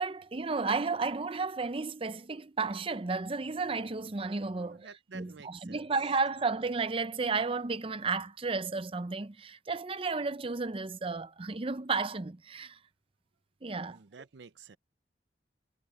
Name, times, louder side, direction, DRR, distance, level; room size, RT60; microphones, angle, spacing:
voice 1, 0.0-4.9 5.1-12.8 13.6-14.0, right 4 dB, 30° right, 0.6 m, -33 dB
voice 2, 4.6-5.9 13.9-14.8, right 5 dB, 80° right, 0.6 m, -51 dB
head